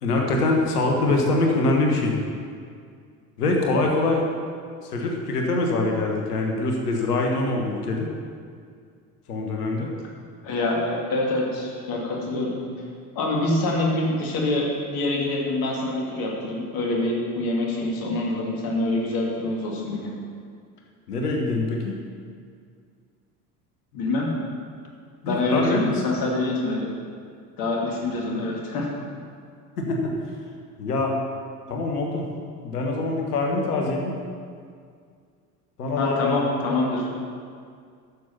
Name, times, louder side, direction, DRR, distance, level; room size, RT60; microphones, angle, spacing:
voice 1, 0.0-2.1 3.4-4.2 4.8-8.1 9.3-9.9 21.1-21.9 25.2-26.0 29.8-30.1 30.8-31.2 31.7-32.3 32.6-34.1 35.8-36.5, left 2 dB, 70° left, 1 dB, 1.5 m, -24 dB
voice 2, 10.4-12.6 13.2-20.1 23.9-24.3 25.2-26.9 27.6-28.9 36.0-37.1, left 2 dB, 45° left, -2 dB, 2.5 m, -25 dB
9.3 x 6.9 x 5.8 m, 2.2 s
figure-of-eight pair, 70°, 47 cm